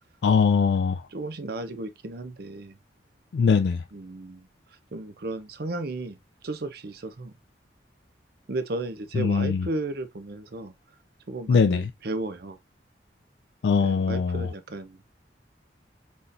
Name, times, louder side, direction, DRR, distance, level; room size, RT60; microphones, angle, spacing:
voice 1, 0.2-1.0 3.3-3.8 9.1-9.7 11.5-11.9 13.6-14.5, left 5 dB, 65° left, 0.3 m, -21 dB
voice 2, 1.1-2.8 3.9-4.5 4.9-6.2 6.4-7.3 8.5-10.7 11.3-12.6 13.8-15.1, right 2 dB, 60° right, 0.6 m, -34 dB
4.1 x 3.7 x 2.5 m
head